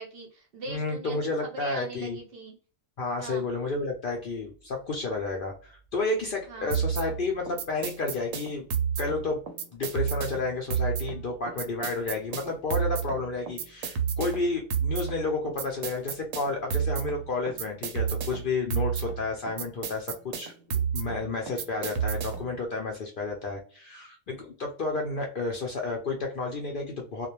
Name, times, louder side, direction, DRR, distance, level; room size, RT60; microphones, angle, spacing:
voice 1, 0.0-2.5 3.2-3.5 6.5-6.8, right 3 dB, 60° right, 2 dB, 0.7 m, -41 dB
voice 2, 0.7-2.2 3.0-8.7 9.0-9.4 9.7-27.3, left 3 dB, 60° left, 1 dB, 0.6 m, -31 dB
sound 1, 6.7-22.6, right 7 dB, 90° right, 1.0 m, -31 dB
2.3 x 2.1 x 2.9 m, 0.41 s
omnidirectional pair, 1.3 m